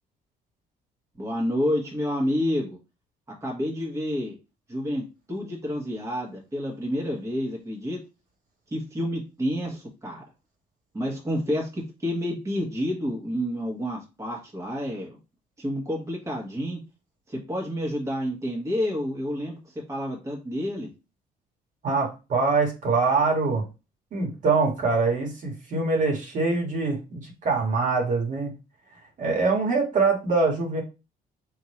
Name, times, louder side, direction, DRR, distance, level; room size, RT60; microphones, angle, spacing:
voice 1, 1.2-2.8 3.4-4.3 4.7-8.0 8.7-10.2 10.9-15.2 15.6-16.8 17.3-19.6 19.9-20.9, equal, 20° right, -1 dB, 1.4 m, -29 dB
voice 2, 21.8-23.6 24.1-28.5 29.2-30.8, right 4 dB, 50° right, 0 dB, 1.6 m, -24 dB
3.6 x 2.8 x 4.3 m, 0.29 s
cardioid pair, 110°, 17 cm